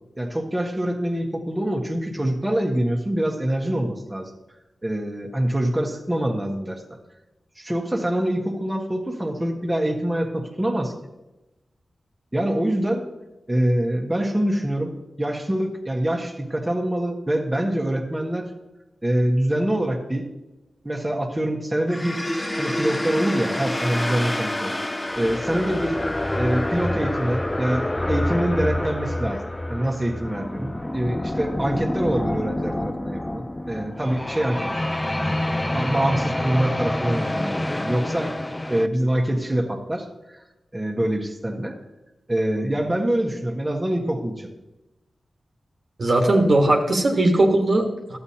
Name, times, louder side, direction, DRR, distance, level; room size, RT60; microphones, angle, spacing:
voice 1, 0.2-4.3 4.8-6.8 7.6-10.9 12.3-13.1 13.5-18.5 19.0-20.3 20.8-22.2 22.6-24.7 25.1-26.0 26.4-29.4 29.7-35.4 35.7-40.1 40.7-41.7 42.3-44.5, right 1 dB, 20° right, 1 dB, 1.4 m, -25 dB
sound 1, 21.9-38.9, left 1 dB, 20° left, 0.5 m, -27 dB
voice 2, 46.0-48.2, right 1 dB, 60° right, 0 dB, 1.4 m, -19 dB
12.5 x 7.9 x 2.9 m, 0.99 s
cardioid pair, 40°, 0 cm